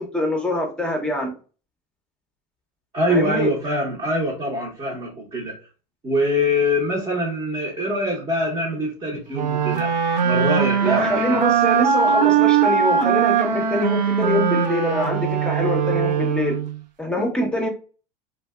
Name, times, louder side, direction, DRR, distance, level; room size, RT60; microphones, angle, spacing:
voice 1, 0.0-1.3 3.1-3.5 10.8-16.6 17.0-17.7, left 1 dB, 5° left, 0.8 m, -24 dB
voice 2, 2.9-5.6 6.0-9.9 10.2-11.4, left 1 dB, 25° right, 1.0 m, -24 dB
sound 1, 9.3-16.8, right 7 dB, 85° right, 0.4 m, -20 dB
2.5 x 2.3 x 2.3 m
hypercardioid pair, 80°, 21 cm